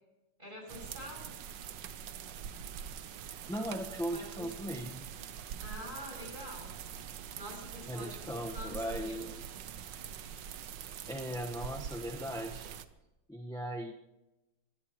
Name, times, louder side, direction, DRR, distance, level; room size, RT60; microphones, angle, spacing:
voice 1, 0.4-1.3 2.2-2.3 4.1-4.7 5.6-6.7 7.3-9.2, equal, 25° right, 0 dB, 7.5 m, -46 dB
sound 1, 0.7-12.8, right 8 dB, 75° right, 1.5 m, -44 dB
voice 2, 3.2-5.1 7.9-9.4 11.1-12.6 13.3-13.9, equal, 5° left, 0 dB, 0.9 m, -38 dB
24.0 x 18.5 x 3.1 m, 0.99 s
omnidirectional pair, 2.0 m